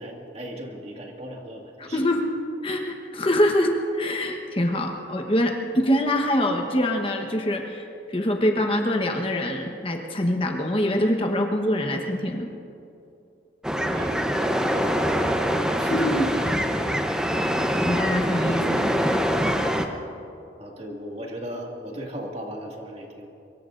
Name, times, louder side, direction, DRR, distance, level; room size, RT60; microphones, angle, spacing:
voice 1, 0.0-2.0 13.7-15.4 20.6-23.3, equal, 35° right, -1 dB, 2.0 m, -37 dB
voice 2, 1.8-2.4 2.6-12.5 15.8-16.3 17.8-18.9, left 1 dB, 30° left, 3 dB, 1.1 m, -24 dB
sound 1, 13.6-19.9, equal, 5° right, 0.8 m, -24 dB
24.5 x 23.0 x 2.6 m, 2.7 s
head